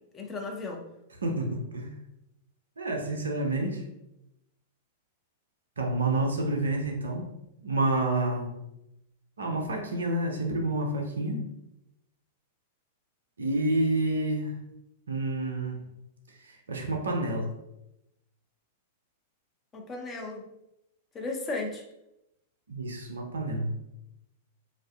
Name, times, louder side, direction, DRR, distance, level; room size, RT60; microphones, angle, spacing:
voice 1, 0.1-0.8 19.7-20.4 21.1-21.8, left 3 dB, 20° left, 1 dB, 0.5 m, -35 dB
voice 2, 1.2-1.9 2.8-3.8 5.8-7.3 7.6-8.6 9.4-11.5 13.4-14.5 15.1-15.8 16.4-17.5 22.7-23.7, right 2 dB, 75° right, 2 dB, 0.4 m, -29 dB
2.4 x 2.3 x 2.2 m, 0.87 s
figure-of-eight pair, 95°, 0 cm